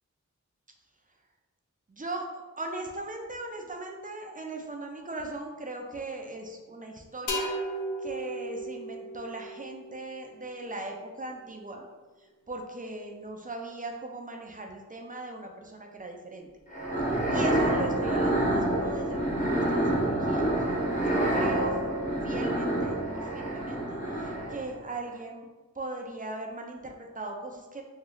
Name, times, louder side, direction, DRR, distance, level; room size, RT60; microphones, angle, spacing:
voice 1, 1.9-2.3 2.6-7.6 8.0-11.9 12.5-16.5 17.3-21.8 22.2-25.5 25.8-27.8, right 2 dB, 25° right, 2 dB, 0.5 m, -39 dB
sound 1, 7.3-10.9, right 1 dB, 80° left, 0.6 m, -36 dB
sound 2, 16.7-24.7, right 1 dB, 25° left, 0.9 m, -27 dB
3.1 x 2.4 x 3.8 m, 1.2 s
wide cardioid pair, 65°, 30 cm